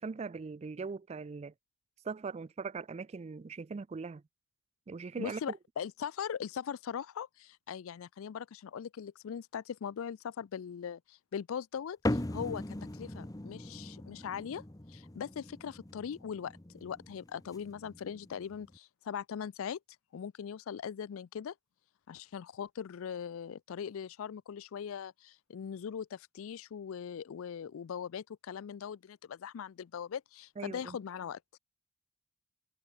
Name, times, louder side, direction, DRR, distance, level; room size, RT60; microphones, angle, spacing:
voice 1, 0.0-1.5 2.0-4.2 4.9-5.6 30.6-31.0, right 4 dB, 30° right, 0.3 m, -40 dB
voice 2, 5.2-12.6 13.0-14.6 14.9-19.8 20.1-21.5 22.1-31.4, left 7 dB, 65° left, 0.4 m, -40 dB
sound 1, 12.1-18.8, left 1 dB, 15° left, 0.9 m, -40 dB
head